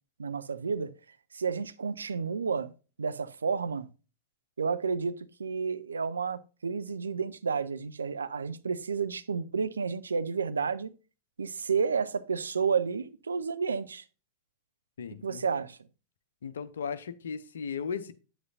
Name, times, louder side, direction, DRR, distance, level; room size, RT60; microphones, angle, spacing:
voice 1, 0.2-0.9 1.3-2.7 3.0-3.9 4.6-10.9 11.4-14.0 15.2-15.8, right 5 dB, 75° right, 0.5 m, -31 dB
voice 2, 15.0-15.4 16.4-18.1, left 6 dB, 65° left, 0.7 m, -36 dB
9.4 x 8.0 x 2.6 m
figure-of-eight pair, 90°, 0 cm